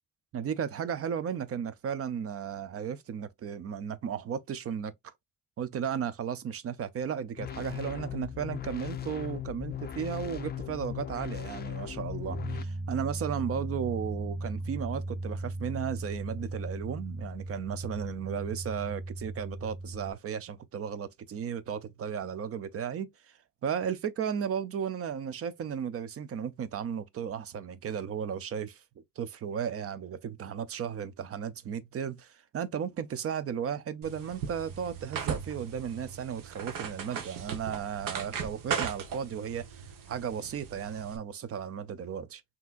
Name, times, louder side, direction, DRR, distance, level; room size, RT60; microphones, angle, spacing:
voice 1, 0.3-5.1 5.6-23.1 23.6-28.8 29.2-42.4, right 8 dB, 45° right, 0.6 m, -35 dB
sound 1, 7.4-12.6, left 10 dB, 30° left, 0.4 m, -38 dB
sound 2, 12.3-20.1, right 2 dB, 10° right, 1.2 m, -37 dB
sound 3, 34.0-41.2, right 7 dB, 85° right, 1.0 m, -38 dB
5.8 x 2.9 x 2.4 m
cardioid pair, 140°, 32 cm